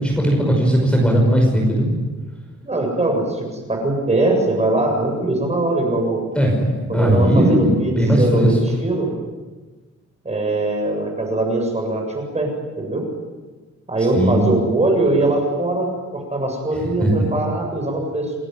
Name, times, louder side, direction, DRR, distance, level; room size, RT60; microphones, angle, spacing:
voice 1, 0.0-2.0 6.3-8.6 14.1-14.4 17.0-17.3, equal, 5° left, 0 dB, 5.7 m, -17 dB
voice 2, 2.6-6.2 6.9-9.1 10.2-12.5 12.8-13.0 13.9-18.3, right 2 dB, 25° right, 2 dB, 7.4 m, -21 dB
29.5 x 21.0 x 9.6 m, 1.3 s
wide cardioid pair, 170°, 29 cm